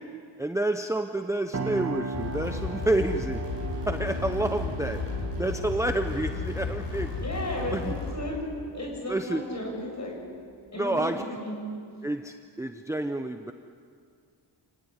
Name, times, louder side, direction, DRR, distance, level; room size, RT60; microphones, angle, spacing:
voice 1, 0.4-3.5 3.9-5.0 5.4-7.1 7.7-7.9 9.1-9.4 10.8-11.2 12.0-13.5, right 1 dB, 5° right, 6 dB, 0.8 m, -29 dB
sound 1, 1.5-11.3, right 3 dB, 35° right, 1.8 m, -39 dB
sound 2, 2.1-8.1, left 4 dB, 80° left, 6.8 m, -33 dB
voice 2, 7.2-8.4 8.7-9.7 10.0-10.1 10.7-11.6, left 1 dB, 40° left, 0 dB, 7.8 m, -34 dB
29.0 x 18.5 x 9.7 m, 2.2 s
wide cardioid pair, 165°, 43 cm